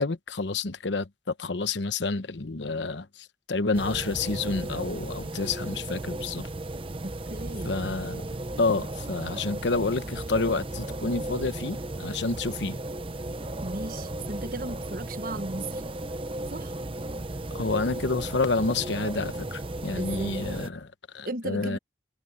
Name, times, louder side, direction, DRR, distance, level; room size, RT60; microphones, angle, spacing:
voice 1, 0.0-3.1 3.5-6.5 7.6-8.2 8.6-12.8 17.5-21.8, left 3 dB, 85° left, 1.0 m, -29 dB
sound 1, 3.7-20.7, right 1 dB, 30° right, 0.8 m, -35 dB
voice 2, 7.0-7.7 13.6-15.8 16.5-16.7 20.0-20.4 21.3-21.8, right 2 dB, 50° right, 1.3 m, -35 dB
head